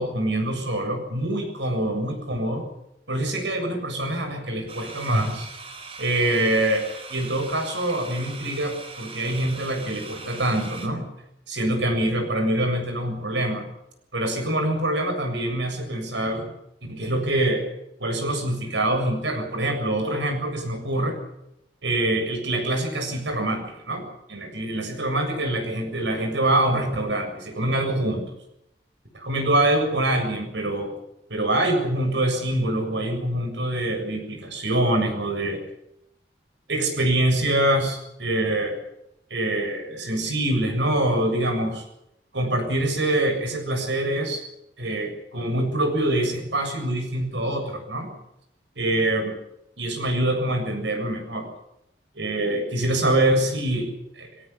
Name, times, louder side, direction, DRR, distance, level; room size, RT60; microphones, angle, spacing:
voice 1, 0.0-2.7 3.1-5.5 6.0-11.1 11.5-13.7 14.1-16.5 16.9-17.7 18.0-21.2 21.8-28.3 29.1-30.9 31.3-35.6 36.7-38.8 39.3-41.8 42.3-44.4 44.8-48.1 48.8-49.4 49.8-51.5 52.1-54.3, right 1 dB, 90° right, 5 dB, 7.4 m, -25 dB
sound 1, 4.7-10.9, right 4 dB, 35° right, 4.1 m, -40 dB
22.5 x 18.0 x 8.5 m, 0.82 s
head